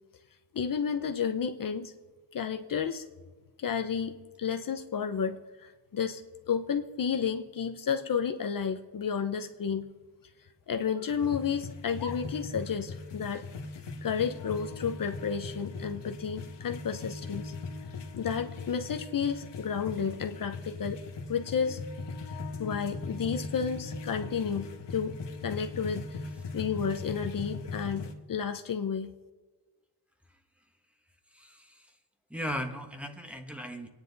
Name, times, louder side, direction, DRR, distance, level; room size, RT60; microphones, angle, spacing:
voice 1, 0.5-1.9 2.3-3.0 3.6-6.2 6.5-9.9 10.7-13.4 14.0-17.5 18.2-21.0 21.3-21.8 22.3-25.2 25.4-26.2 26.5-29.1, left 7 dB, 50° left, 6 dB, 0.8 m, -32 dB
sound 1, 11.1-28.1, left 3 dB, 80° left, 1.8 m, -40 dB
voice 2, 31.3-31.9 32.3-33.9, equal, 5° right, 4 dB, 1.3 m, -37 dB
26.0 x 9.8 x 4.0 m, 1.3 s
wide cardioid pair, 135°, 41 cm